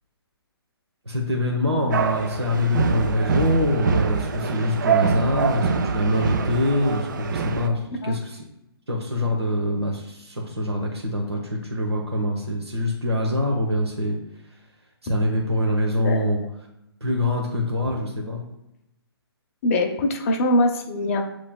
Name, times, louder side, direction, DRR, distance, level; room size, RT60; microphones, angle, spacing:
voice 1, 1.0-8.4 8.9-14.2 15.0-16.4 17.0-18.4, left 1 dB, 85° right, -1 dB, 1.0 m, -24 dB
sound 1, 1.9-7.7, right 6 dB, 50° right, 0.4 m, -25 dB
voice 2, 19.6-21.2, left 1 dB, 35° left, 4 dB, 0.7 m, -22 dB
7.3 x 3.1 x 2.3 m, 0.85 s
figure-of-eight pair, 135°, 13 cm